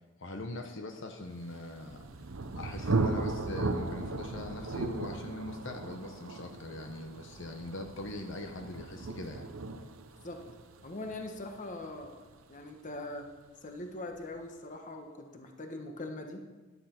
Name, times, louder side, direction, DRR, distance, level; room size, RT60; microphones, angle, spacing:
voice 1, 0.2-2.0 2.6-9.4, left 2 dB, 65° left, 4 dB, 1.1 m, -41 dB
Thunder, 1.5-13.1, right 3 dB, 85° right, 0.8 m, -37 dB
voice 2, 10.8-12.2 12.5-13.3 13.6-16.4, left 2 dB, 40° left, 4 dB, 1.3 m, -41 dB
13.5 x 11.5 x 4.5 m, 1.2 s
head